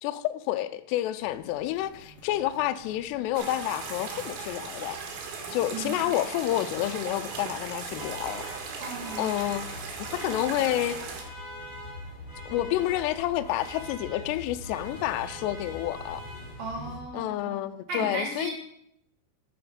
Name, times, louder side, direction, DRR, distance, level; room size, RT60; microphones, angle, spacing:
voice 1, 0.0-5.0 5.5-8.5 9.2-11.0 12.5-16.2 17.1-18.5, left 14 dB, 85° left, 2.4 m, -29 dB
sound 1, 1.2-17.0, left 1 dB, 60° left, 2.2 m, -47 dB
sound 2, 3.4-11.2, right 5 dB, 75° right, 3.8 m, -38 dB
Alarm, 7.6-16.9, equal, 10° right, 1.0 m, -45 dB
voice 2, 8.8-9.3 16.6-17.6 17.9-18.5, right 2 dB, 60° right, 2.7 m, -35 dB
10.0 x 7.0 x 5.1 m
omnidirectional pair, 5.4 m